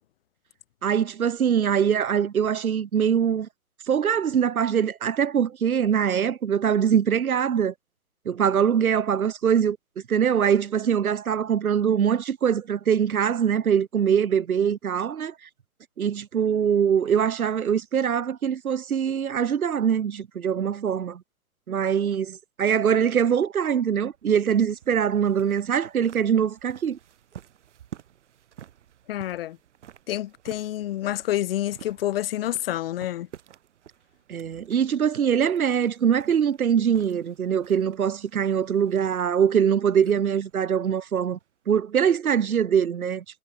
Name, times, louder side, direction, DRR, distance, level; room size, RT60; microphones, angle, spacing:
voice 1, 0.8-3.5 3.9-7.7 8.3-9.8 10.1-15.3 16.0-21.2 21.7-27.0 34.3-41.4 41.7-43.2, right 8 dB, 85° right, 0.7 m, -23 dB
sound 1, 24.0-41.7, right 10 dB, 55° right, 4.1 m, -51 dB
voice 2, 29.1-29.6 30.1-33.3, left 13 dB, 45° left, 1.2 m, -28 dB
figure-of-eight pair, 120°, 42 cm